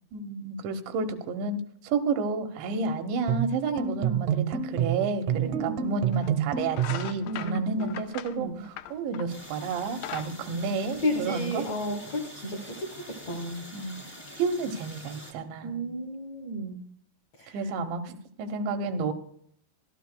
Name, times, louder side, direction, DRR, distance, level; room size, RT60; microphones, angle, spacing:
voice 1, 0.1-11.7 13.7-14.1 14.4-15.9 17.5-19.1, right 4 dB, 90° right, 6 dB, 3.4 m, -31 dB
sound 1, 3.3-7.1, right 10 dB, 75° right, 2.0 m, -28 dB
voice 2, 3.7-4.2 5.3-6.1 7.2-8.0 8.4-8.6 11.0-13.6 15.6-16.8 17.4-17.6, equal, 70° left, 3 dB, 1.7 m, -33 dB
sound 2, 5.4-5.5 6.1-6.3 6.7-9.4 9.8-11.5, left 12 dB, 85° left, 2.9 m, -40 dB
sound 3, 9.3-15.3, equal, 25° left, 0.7 m, -45 dB
25.0 x 12.5 x 2.2 m, 0.66 s
omnidirectional pair, 5.0 m